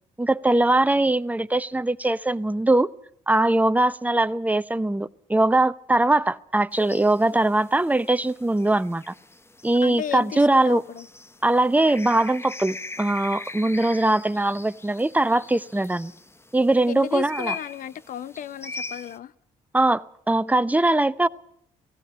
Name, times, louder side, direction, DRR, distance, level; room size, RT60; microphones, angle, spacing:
voice 1, 0.2-2.9 3.3-9.1 9.6-10.8 11.4-16.1 16.5-17.5 19.7-21.3, right 2 dB, 10° right, 0.8 m, -21 dB
sound 1, 6.7-19.2, left 3 dB, 15° left, 0.9 m, -41 dB
voice 2, 9.8-11.1 16.9-19.3, left 10 dB, 60° left, 0.8 m, -34 dB
17.5 x 16.0 x 9.6 m
supercardioid pair, 65°, 15 cm